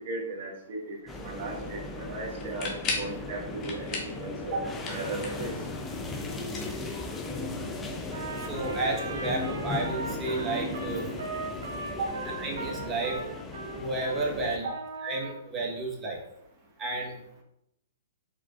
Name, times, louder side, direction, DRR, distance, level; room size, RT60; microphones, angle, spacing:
voice 1, 0.1-1.0 1.2-5.5 11.9-12.1, right 2 dB, 45° right, -2 dB, 1.6 m, -36 dB
sound 1, 1.1-14.6, left 2 dB, 10° left, 0.5 m, -37 dB
sound 2, 2.4-3.2 3.6-4.2 4.5-5.5 6.4-7.4, left 3 dB, 30° left, 1.1 m, -35 dB
Trumpet, 8.1-14.3 14.6-15.4, right 3 dB, 80° right, 1.0 m, -39 dB
voice 2, 8.4-11.1 12.4-13.2 13.7-14.7 15.0-16.2 16.8-17.1, right 2 dB, 20° right, -1 dB, 1.1 m, -31 dB
4.9 x 3.9 x 2.4 m, 0.79 s
hypercardioid pair, 140°, 0 cm